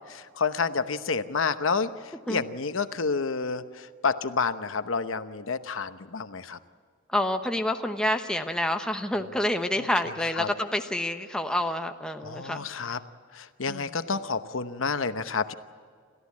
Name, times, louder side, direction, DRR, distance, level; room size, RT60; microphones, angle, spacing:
voice 1, 0.1-6.6 9.8-9.9 10.4-10.5 12.2-13.0 13.3-15.5, left 5 dB, 70° left, 11 dB, 0.9 m, -29 dB
voice 2, 7.1-12.7 13.7-13.8, left 1 dB, 5° left, 5 dB, 0.9 m, -28 dB
29.0 x 14.0 x 8.5 m, 2.1 s
head